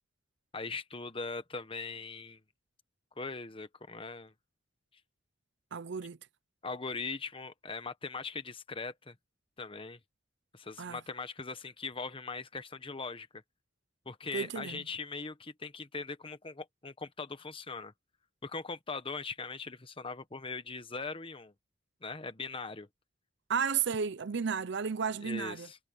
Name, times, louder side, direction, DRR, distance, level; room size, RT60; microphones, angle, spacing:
voice 1, 0.5-2.4 3.2-4.3 6.6-9.1 9.6-10.0 10.5-13.4 14.0-17.9 18.4-21.5 22.0-22.9 25.2-25.8, left 4 dB, 25° left, 1.2 m, -40 dB
voice 2, 5.7-6.2 10.8-11.0 14.3-14.8 23.5-25.7, right 6 dB, 60° right, 0.6 m, -33 dB
head